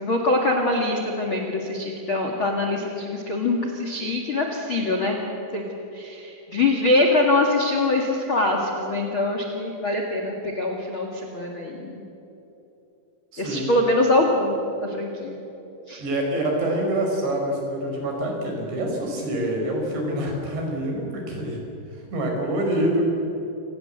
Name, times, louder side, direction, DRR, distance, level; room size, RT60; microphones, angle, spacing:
voice 1, 0.0-5.2 5.5-5.6 5.9-12.0 13.4-14.5 14.8-15.4 15.9-16.0, left 2 dB, 45° left, 1 dB, 1.7 m, -23 dB
voice 2, 13.3-13.7 16.0-21.6 21.9-23.0, right 1 dB, 65° right, 1 dB, 7.0 m, -26 dB
28.0 x 19.0 x 8.0 m, 3.0 s
omnidirectional pair, 5.5 m